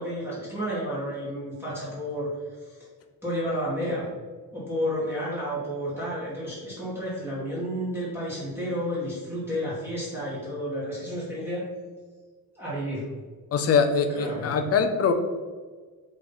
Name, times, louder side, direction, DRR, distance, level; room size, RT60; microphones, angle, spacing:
voice 1, 0.0-2.3 2.7-2.8 3.2-4.1 4.5-11.6 12.6-13.1 14.1-14.7, equal, 5° right, -9 dB, 1.9 m, -31 dB
voice 2, 13.5-15.1, left 6 dB, 40° left, 7 dB, 0.7 m, -23 dB
7.9 x 3.8 x 4.1 m, 1.4 s
cardioid pair, 160°, 36 cm